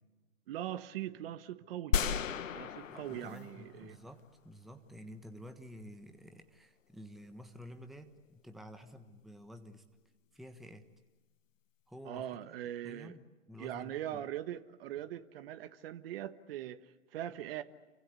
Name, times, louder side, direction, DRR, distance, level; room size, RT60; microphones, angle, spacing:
voice 1, 0.5-2.0 2.5-4.0 12.0-13.2 13.6-17.6, right 12 dB, 45° right, 11 dB, 1.4 m, -41 dB
sound 1, 1.9-4.2, left 7 dB, 70° left, 1.6 m, -34 dB
voice 2, 2.9-9.8 10.3-10.9 11.9-12.4 12.8-13.2 13.5-14.3, equal, ahead, 7 dB, 1.3 m, -51 dB
29.5 x 24.5 x 8.3 m, 1.2 s
hypercardioid pair, 130°, 40 cm